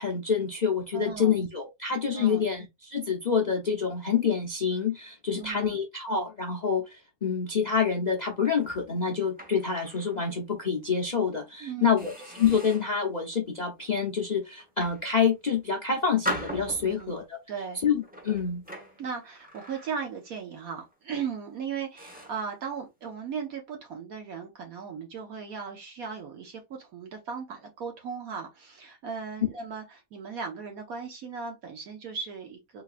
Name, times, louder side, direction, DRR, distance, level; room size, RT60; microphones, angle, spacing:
voice 1, 0.0-17.4 17.8-18.6, left 6 dB, 50° left, 0.5 m, -27 dB
voice 2, 0.9-1.4 2.1-2.5 5.3-5.8 11.6-12.1 16.8-17.2 17.5-17.8 19.0-32.8, right 6 dB, 65° right, 1.3 m, -37 dB
sound 1, 8.4-10.2 10.6-10.8 11.3-11.5 12.0-13.0 13.6-13.9 14.6-15.6 16.2-17.2 18.0-20.4 20.6-20.9 21.5-21.6 22.0-22.5, equal, 5° right, 1.0 m, -40 dB
4.1 x 2.8 x 2.5 m
omnidirectional pair, 1.8 m